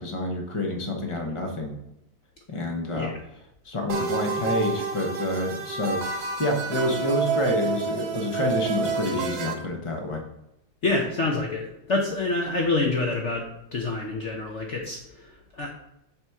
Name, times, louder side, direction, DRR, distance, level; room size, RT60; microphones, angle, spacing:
voice 1, 0.0-1.8 2.5-3.1 3.6-10.2, left 1 dB, 25° left, 2 dB, 0.6 m, -28 dB
sound 1, 3.9-9.5, right 5 dB, 65° right, 1.5 m, -29 dB
voice 2, 10.8-15.7, left 3 dB, 60° left, 0 dB, 0.7 m, -27 dB
7.1 x 3.1 x 5.6 m, 0.86 s
omnidirectional pair, 2.2 m